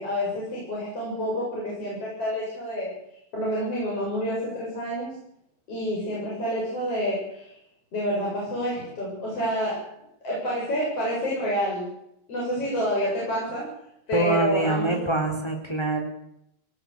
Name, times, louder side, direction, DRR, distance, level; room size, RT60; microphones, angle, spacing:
voice 1, 0.0-2.9 3.3-5.2 5.7-7.5 7.9-9.9 10.2-11.9 12.3-13.7 14.1-15.0, equal, 30° left, -5 dB, 8.6 m, -28 dB
voice 2, 14.1-16.0, right 2 dB, 5° left, 3 dB, 3.0 m, -25 dB
19.5 x 18.5 x 8.4 m, 0.76 s
omnidirectional pair, 5.5 m